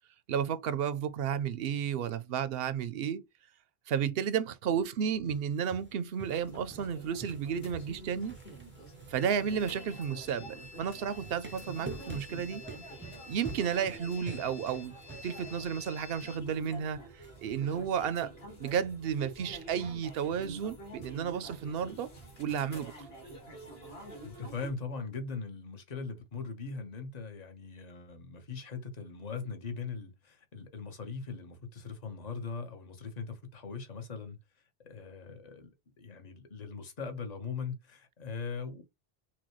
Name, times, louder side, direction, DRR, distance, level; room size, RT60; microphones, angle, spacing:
voice 1, 0.3-3.2 3.9-8.4 9.1-12.6 13.3-15.0 15.2-18.3 18.6-22.1 22.4-23.1, right 8 dB, 70° right, 0.8 m, -32 dB
sound 1, 5.3-6.9 7.2-10.3 11.0-15.7 16.1-16.2 17.2-17.3, right 3 dB, 15° right, 0.4 m, -47 dB
sound 2, 6.3-24.7, right 2 dB, 70° left, 2.0 m, -48 dB
sound 3, 9.2-16.4, left 4 dB, 20° left, 0.9 m, -51 dB
voice 2, 24.2-34.4 34.8-35.7 36.0-38.8, left 5 dB, 45° left, 1.1 m, -40 dB
5.9 x 2.2 x 3.0 m
omnidirectional pair, 1.1 m